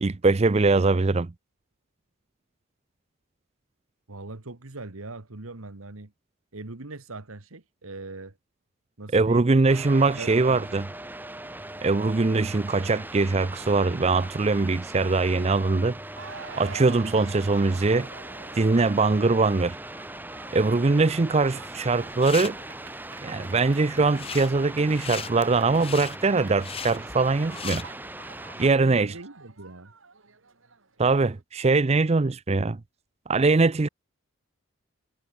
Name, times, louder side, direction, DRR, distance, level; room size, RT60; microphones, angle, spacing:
voice 1, 0.0-1.3 9.1-10.9 11.8-16.0 16.6-18.1 18.5-19.8 20.5-22.6 23.2-27.9 28.6-29.1 31.0-32.8 33.3-33.9, right 3 dB, 30° right, 0.5 m, -22 dB
voice 2, 4.1-6.1 6.5-8.3 9.0-9.4 10.1-10.8 28.5-29.9, right 2 dB, 80° right, 1.6 m, -40 dB
sound 1, 9.7-28.7, right 1 dB, 10° right, 2.9 m, -40 dB
sound 2, 16.1-31.4, right 5 dB, 65° right, 2.1 m, -48 dB
sound 3, 21.9-22.5 24.0-24.5 24.9-27.8, left 7 dB, 25° left, 1.3 m, -37 dB
head